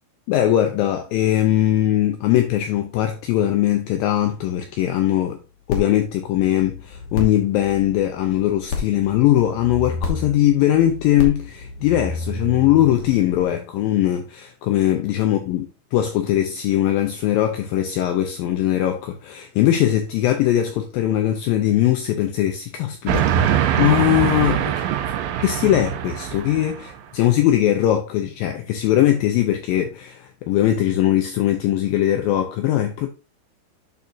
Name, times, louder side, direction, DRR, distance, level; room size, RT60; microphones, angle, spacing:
voice 1, 0.3-5.4 5.7-15.7 15.9-24.8 25.4-33.1, left 12 dB, 80° left, 2.1 m, -20 dB
sound 1, 5.7-13.5, left 3 dB, 60° left, 2.2 m, -31 dB
Train, 23.1-27.0, right 10 dB, 80° right, 2.1 m, -22 dB
11.0 x 4.1 x 2.7 m
omnidirectional pair, 4.7 m